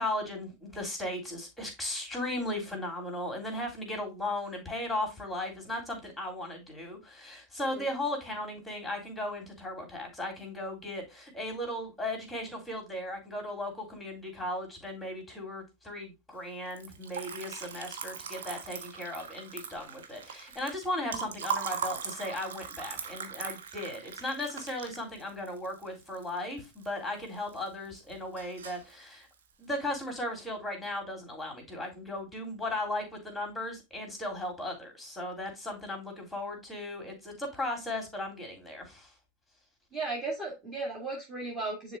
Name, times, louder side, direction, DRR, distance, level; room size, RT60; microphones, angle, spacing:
voice 1, 0.0-29.3 29.6-39.1, left 1 dB, ahead, 3.2 m, -36 dB
Liquid, 16.7-26.9 27.2-27.9 28.1-28.9, right 7 dB, 60° right, 1.2 m, -39 dB
voice 2, 39.9-42.0, right 3 dB, 15° right, 2.2 m, -36 dB
10.5 x 4.0 x 2.4 m
figure-of-eight pair, 90°, 0 cm